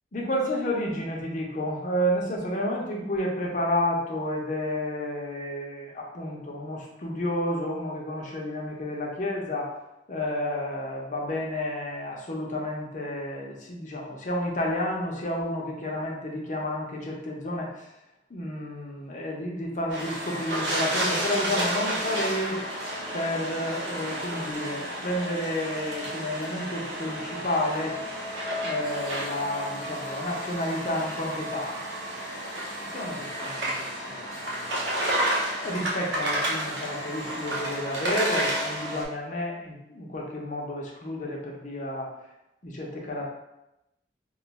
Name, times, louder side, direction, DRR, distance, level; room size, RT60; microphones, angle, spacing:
voice 1, 0.1-9.7 10.1-17.9 18.3-22.6 23.1-28.0 28.6-31.9 32.3-34.9 35.6-42.1 42.6-43.2, left 1 dB, 45° left, -1 dB, 0.7 m, -31 dB
sound 1, 19.9-39.0, right 1 dB, 90° right, 0.7 m, -31 dB
2.5 x 2.3 x 4.0 m, 0.90 s
head